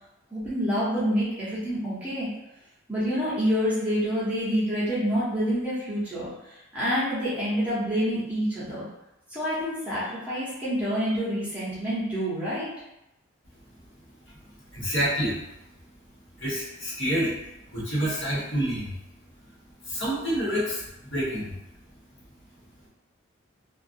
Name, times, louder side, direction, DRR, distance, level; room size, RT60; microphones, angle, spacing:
voice 1, 0.3-2.3 2.9-8.8 9.3-12.7, equal, 5° right, -11 dB, 0.9 m, -27 dB
voice 2, 14.4-15.6 16.4-17.5 17.7-19.0 19.8-21.6, equal, 60° left, -8 dB, 1.1 m, -28 dB
2.4 x 2.4 x 2.5 m, 0.90 s
head